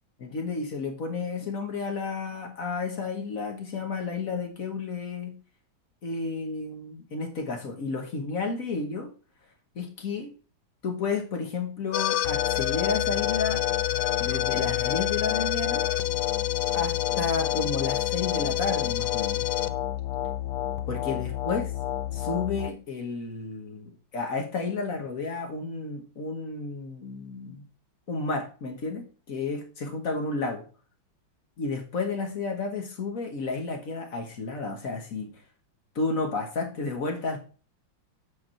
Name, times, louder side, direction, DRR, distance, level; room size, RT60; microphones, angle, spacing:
voice 1, 0.2-5.4 6.0-9.1 9.7-10.3 10.8-13.6 14.2-15.8 16.7-19.5 20.9-21.7 22.1-27.6 28.1-30.7 31.6-35.3 35.9-37.4, left 4 dB, 45° left, 4 dB, 1.5 m, -32 dB
sound 1, 11.9-22.7, left 13 dB, 70° left, 1.0 m, -27 dB
8.1 x 4.7 x 4.4 m, 0.38 s
omnidirectional pair, 2.1 m